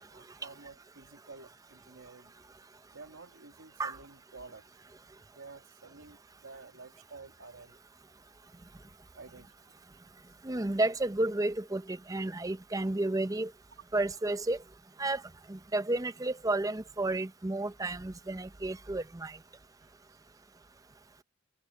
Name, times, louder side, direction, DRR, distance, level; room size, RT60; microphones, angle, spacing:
voice 1, 0.0-2.3 2.9-4.7 5.3-7.8 9.1-9.8 20.1-20.2, right 3 dB, 90° right, 2.0 m, -51 dB
voice 2, 10.4-13.5 13.9-14.6 15.0-15.2 15.5-19.3, right 2 dB, 15° right, 0.6 m, -31 dB
head